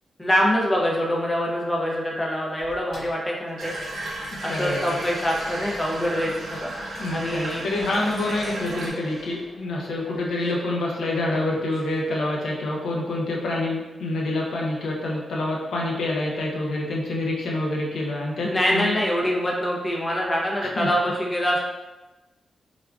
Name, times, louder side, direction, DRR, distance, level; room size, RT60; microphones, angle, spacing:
voice 1, 0.2-3.7 4.4-6.7 7.1-7.6 18.4-21.6, equal, 15° left, -2 dB, 0.5 m, -24 dB
sound 1, 2.6-4.0 4.4-10.6 11.6-12.8, left 1 dB, 55° left, 0.8 m, -45 dB
Water tap faucet / Bathtub (filling or washing), 3.6-8.9, right 2 dB, 75° right, 0.6 m, -34 dB
voice 2, 4.4-5.0 7.0-19.0 20.8-20.9, left 2 dB, 85° left, -2 dB, 0.6 m, -27 dB
3.4 x 2.3 x 2.3 m, 1.1 s
wide cardioid pair, 160°, 0 cm